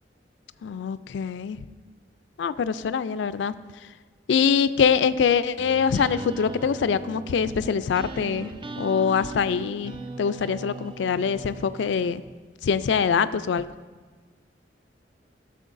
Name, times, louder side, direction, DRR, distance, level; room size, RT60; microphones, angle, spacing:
voice 1, 0.6-1.6 2.4-3.5 4.3-12.2 12.6-13.7, left 6 dB, 85° left, 14 dB, 0.3 m, -24 dB
sound 1, 5.6-12.4, right 2 dB, 25° right, 0.4 m, -38 dB
14.5 x 6.8 x 2.6 m, 1.4 s
head